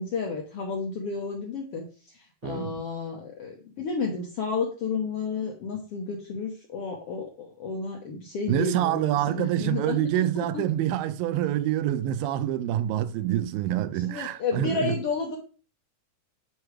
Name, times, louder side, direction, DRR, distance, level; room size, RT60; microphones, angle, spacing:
voice 1, 0.0-1.9 2.1-10.6 13.9-15.4, left 4 dB, 70° left, 1.4 m, -32 dB
voice 2, 2.4-2.8 8.5-15.0, right 12 dB, 90° right, 2.3 m, -26 dB
11.5 x 4.8 x 3.2 m
omnidirectional pair, 3.9 m